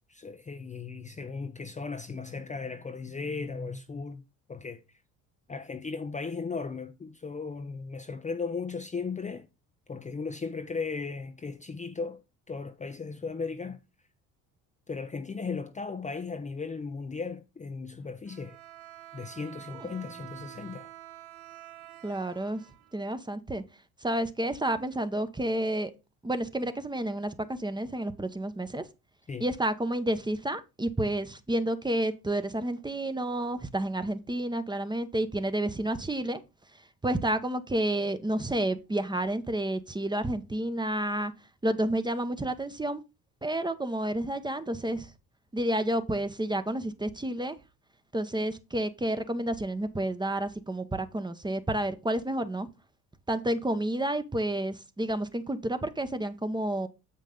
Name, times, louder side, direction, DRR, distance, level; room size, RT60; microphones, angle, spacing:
voice 1, 0.1-4.2 4.5-4.8 5.5-9.5 9.9-12.2 12.5-13.8 14.9-18.6 19.1-20.9 29.3-29.5, left 4 dB, 20° left, 0.6 m, -36 dB
Bowed string instrument, 18.2-23.3, right 14 dB, 85° right, 0.7 m, -48 dB
voice 2, 22.0-22.6 22.9-23.6 24.0-25.9 26.2-28.8 29.4-36.4 36.7-41.3 41.6-43.0 43.4-45.1 45.5-47.6 48.1-52.7 53.3-56.9, right 1 dB, 10° right, 0.9 m, -30 dB
7.4 x 5.4 x 3.8 m
hypercardioid pair, 60°, 41 cm